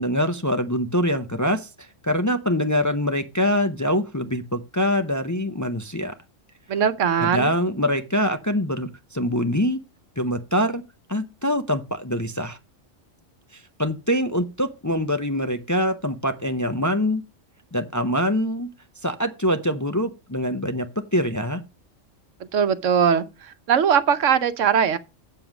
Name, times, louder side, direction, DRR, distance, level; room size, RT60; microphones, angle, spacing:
voice 1, 0.0-6.1 7.2-9.8 10.2-10.8 11.1-12.6 13.5-17.2 17.7-18.7 19.0-20.9 21.1-21.6, equal, 20° left, 0.5 m, -24 dB
voice 2, 6.7-7.5 22.5-25.0, right 7 dB, 80° right, 1.1 m, -20 dB
7.7 x 7.0 x 5.9 m
omnidirectional pair, 1.3 m